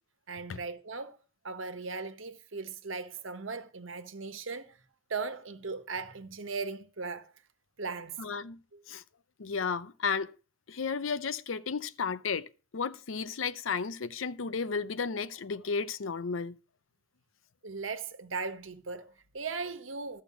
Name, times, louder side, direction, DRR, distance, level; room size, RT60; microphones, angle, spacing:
voice 1, 0.3-1.2 1.4-4.8 5.1-7.3 7.8-8.2 8.7-8.8 17.6-20.2, right 4 dB, 85° right, 1.2 m, -38 dB
voice 2, 8.2-8.6 8.9-9.0 9.4-10.3 10.7-16.6, left 5 dB, 85° left, 0.6 m, -33 dB
13.0 x 6.7 x 6.1 m
head